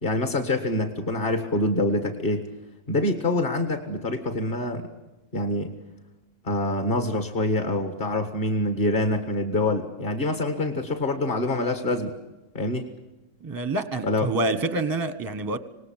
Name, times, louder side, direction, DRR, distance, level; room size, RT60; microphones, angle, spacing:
voice 1, 0.0-2.5 2.9-4.9 5.3-5.7 6.4-12.2 12.5-12.9 14.0-14.3, left 1 dB, 30° left, 1.8 m, -25 dB
voice 2, 13.4-15.6, right 2 dB, 15° right, 0.9 m, -27 dB
26.5 x 19.5 x 7.4 m
omnidirectional pair, 1.9 m